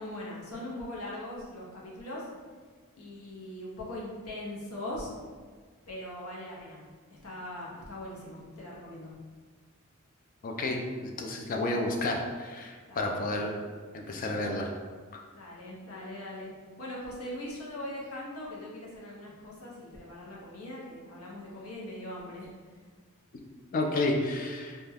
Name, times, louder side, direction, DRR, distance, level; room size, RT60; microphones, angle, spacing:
voice 1, 0.0-2.3 3.0-5.1 5.9-6.8 7.2-9.1 12.9-13.2 15.3-16.5 16.8-22.5, left 1 dB, 75° left, -4 dB, 0.7 m, -41 dB
voice 2, 10.4-13.5 13.9-14.7 15.1-15.2 23.7-24.8, left 2 dB, 40° left, 2 dB, 0.3 m, -31 dB
2.2 x 2.1 x 3.3 m, 1.5 s
head